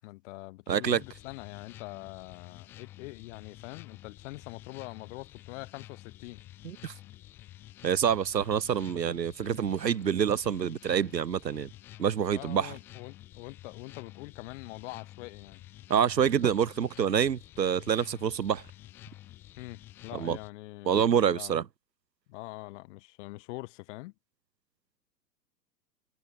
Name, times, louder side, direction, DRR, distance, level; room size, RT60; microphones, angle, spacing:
voice 1, 0.0-6.4 12.3-15.6 19.6-21.6 22.3-24.1, left 22 dB, 45° left, 6.8 m, -44 dB
voice 2, 0.7-1.0 6.6-6.9 7.8-11.7 12.0-12.7 15.9-18.6 20.1-20.4 20.9-21.6, right 8 dB, 75° right, 1.3 m, -27 dB
sound 1, 0.8-20.5, left 14 dB, 5° left, 0.4 m, -50 dB
figure-of-eight pair, 110°, 50 cm